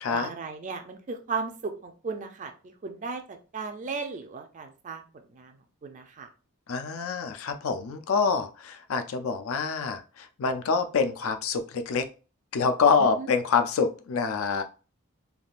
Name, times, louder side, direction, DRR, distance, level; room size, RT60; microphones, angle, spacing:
voice 1, 0.1-5.6 5.8-6.3 13.0-13.3, right 4 dB, 35° right, 6 dB, 0.4 m, -36 dB
voice 2, 6.7-12.1 12.5-14.6, left 5 dB, 65° left, 9 dB, 0.4 m, -26 dB
3.4 x 2.3 x 2.4 m, 0.34 s
head